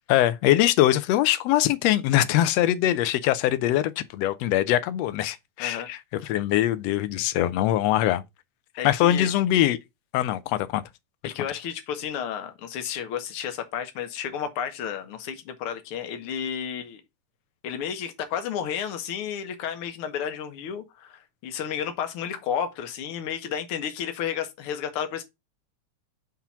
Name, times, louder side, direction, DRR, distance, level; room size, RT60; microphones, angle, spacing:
voice 1, 0.1-8.2 8.8-9.8 10.1-10.8 11.2-11.3, left 13 dB, 75° left, 1.6 m, -22 dB
voice 2, 8.8-9.3 11.3-17.0 17.6-25.2, left 8 dB, 60° left, 1.7 m, -32 dB
5.7 x 3.7 x 5.6 m
omnidirectional pair, 3.3 m